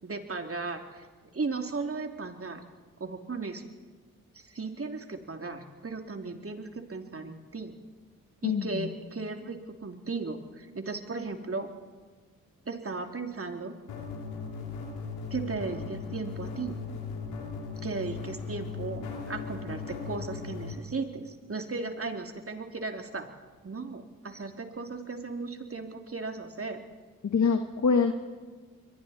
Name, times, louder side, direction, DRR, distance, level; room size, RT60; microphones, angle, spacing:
voice 1, 0.0-1.1 1.3-2.6 3.0-3.6 4.3-7.8 8.4-11.7 12.7-13.7 15.3-16.8 17.8-23.3 23.6-26.8, right 3 dB, 40° right, 4 dB, 3.0 m, -36 dB
voice 2, 8.4-8.9 27.2-28.1, left 5 dB, 50° left, 4 dB, 1.9 m, -25 dB
sound 1, 13.9-20.7, left 5 dB, 90° left, 2.9 m, -38 dB
29.5 x 22.5 x 4.3 m, 1.4 s
supercardioid pair, 40°, 36 cm